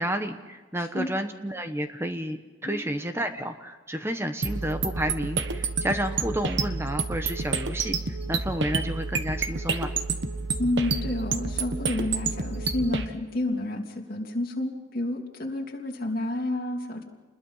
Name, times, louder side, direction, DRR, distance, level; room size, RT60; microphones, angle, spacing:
voice 1, 0.0-9.9, equal, 10° right, 7 dB, 1.1 m, -31 dB
sound 1, 4.4-13.1, right 4 dB, 65° right, 1.2 m, -29 dB
voice 2, 10.6-17.0, left 1 dB, 45° left, 0 dB, 3.0 m, -30 dB
28.5 x 21.0 x 5.7 m, 1.2 s
head